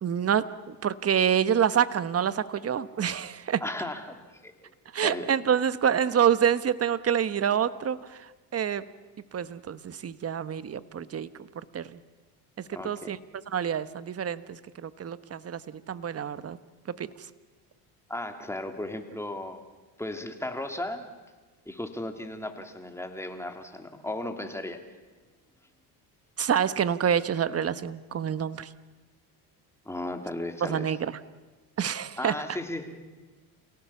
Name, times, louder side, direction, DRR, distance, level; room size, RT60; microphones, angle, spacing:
voice 1, 0.0-3.6 4.9-8.8 9.3-11.3 11.5-12.0 12.6-13.2 13.5-16.6 16.9-17.3 26.4-28.7 30.6-31.2 31.8-32.3, right 8 dB, 30° right, 14 dB, 1.2 m, -27 dB
voice 2, 3.6-4.2 4.4-4.7 5.0-5.3 12.7-13.2 18.1-19.6 20.0-21.1 21.7-24.8 29.8-30.9 32.2-33.0, left 1 dB, 5° left, 5 dB, 2.9 m, -35 dB
28.5 x 17.5 x 7.2 m, 1.3 s
supercardioid pair, 95°, 45 cm